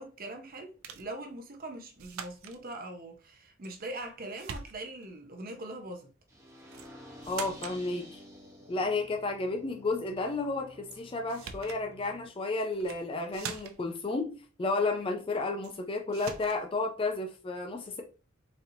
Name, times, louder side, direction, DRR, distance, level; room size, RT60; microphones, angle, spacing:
voice 1, 0.0-6.1, right 2 dB, 45° right, 0.6 m, -42 dB
sound 1, 0.8-1.1 2.0-2.6 3.6-4.1 4.4-5.1 6.7-6.9 7.2-7.8 10.9-11.0 11.3-11.8 12.7-13.0 13.3-13.9 15.6-15.8 16.1-16.6, right 6 dB, 85° right, 0.5 m, -43 dB
sound 2, 6.3-12.3, equal, 15° right, 0.9 m, -51 dB
voice 2, 7.3-8.2 8.7-18.0, left 3 dB, 25° left, 0.4 m, -32 dB
4.1 x 2.7 x 2.7 m
head